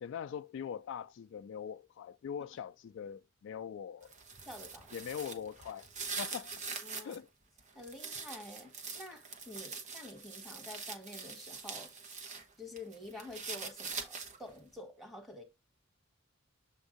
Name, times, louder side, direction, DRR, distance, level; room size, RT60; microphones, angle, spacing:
voice 1, 0.0-4.1 4.9-5.9 6.2-6.6 7.0-7.3, left 8 dB, 65° left, 0.3 m, -42 dB
sound 1, 4.0-7.2 7.6-12.4 12.8-14.5, right 4 dB, 35° right, 1.0 m, -43 dB
voice 2, 4.4-4.9 6.8-7.2 7.7-11.9 12.6-15.4, left 2 dB, ahead, 1.5 m, -48 dB
7.2 x 2.6 x 5.0 m
head